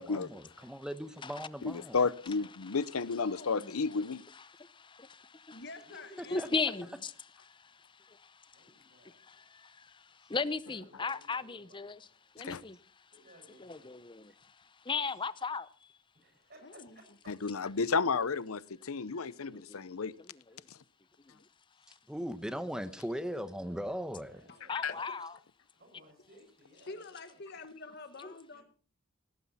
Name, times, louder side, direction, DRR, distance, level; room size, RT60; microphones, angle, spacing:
voice 1, 0.0-2.0 6.2-6.5 22.1-24.4, equal, 5° right, 1.0 m, -39 dB
voice 2, 1.6-4.2 12.4-12.6 17.3-20.1 20.7-20.8 24.8-24.9, left 4 dB, 85° left, 0.7 m, -32 dB
voice 3, 2.3-3.1 5.8-6.3 8.5-9.4 10.6-12.1 13.1-14.0 16.1-17.1 24.3-24.9 25.7-27.4 28.5-28.6, right 1 dB, 45° right, 5.7 m, -60 dB
voice 4, 3.2-3.7 5.5-7.0 16.6-17.0 24.5-24.6 24.9-25.2 26.7-28.6, left 3 dB, 50° left, 1.2 m, -47 dB
voice 5, 6.3-7.1 10.3-12.0 12.4-12.8 13.6-14.2 14.9-15.7 22.5-22.6 24.7-25.3 28.2-28.3, left 4 dB, 20° left, 0.6 m, -35 dB
18.0 x 15.5 x 4.2 m
head